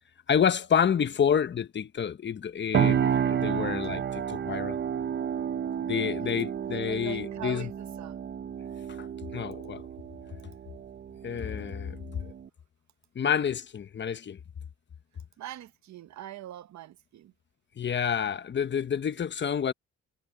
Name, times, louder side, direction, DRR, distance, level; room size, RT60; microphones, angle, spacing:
voice 1, 0.3-4.8 5.9-7.7 9.0-9.1 9.3-9.8 11.2-12.3 13.1-14.4 17.8-19.7, left 8 dB, 40° left, 0.9 m, -28 dB
sound 1, 2.7-12.5, right 8 dB, 35° right, 0.6 m, -31 dB
voice 2, 6.9-8.2 15.4-17.3, right 14 dB, 65° right, 0.9 m, -43 dB
cardioid pair, 90°, 30 cm